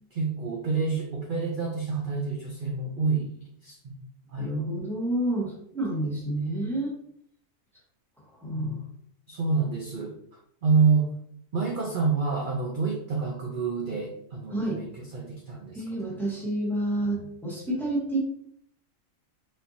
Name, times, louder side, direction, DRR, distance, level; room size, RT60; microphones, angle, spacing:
voice 1, 0.1-3.8 4.3-4.5 8.5-8.8 9.3-10.2 10.6-11.1 11.5-16.2 17.2-17.3, right 4 dB, 55° right, -1 dB, 0.6 m, -28 dB
voice 2, 4.4-6.9 8.4-8.8 14.5-14.8 15.7-18.2, right 1 dB, ahead, -4 dB, 1.1 m, -29 dB
4.3 x 3.3 x 2.7 m, 0.68 s
omnidirectional pair, 1.4 m